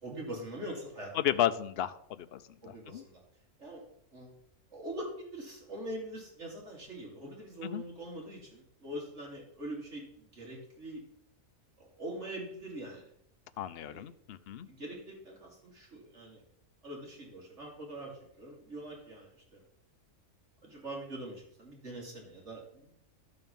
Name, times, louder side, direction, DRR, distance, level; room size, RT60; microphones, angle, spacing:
voice 1, 0.0-1.1 2.6-3.2 3.6-3.8 4.1-4.3 4.7-11.0 11.8-13.1 13.8-14.1 14.6-16.4 16.8-19.6 20.6-22.9, right 1 dB, 60° right, -1 dB, 3.2 m, -43 dB
voice 2, 1.2-2.4 2.7-3.0 7.6-7.8 13.6-14.7, left 11 dB, 55° left, 12 dB, 0.8 m, -33 dB
12.0 x 7.0 x 5.4 m, 0.69 s
omnidirectional pair, 1.4 m